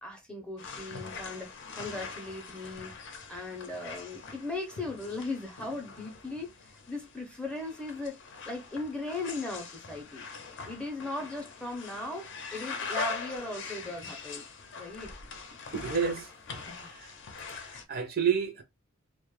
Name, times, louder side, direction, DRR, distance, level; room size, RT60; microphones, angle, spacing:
voice 1, 0.0-2.9 3.3-6.5 6.9-8.2 8.5-10.2 10.6-14.4 14.8-15.1 16.7-16.9, left 2 dB, 5° left, 0.5 m, -38 dB
sound 1, 0.6-17.8, left 4 dB, 60° left, 0.5 m, -42 dB
voice 2, 15.7-16.3 16.8-17.1 17.5-18.6, right 7 dB, 45° right, 0.5 m, -30 dB
2.1 x 2.0 x 3.0 m
head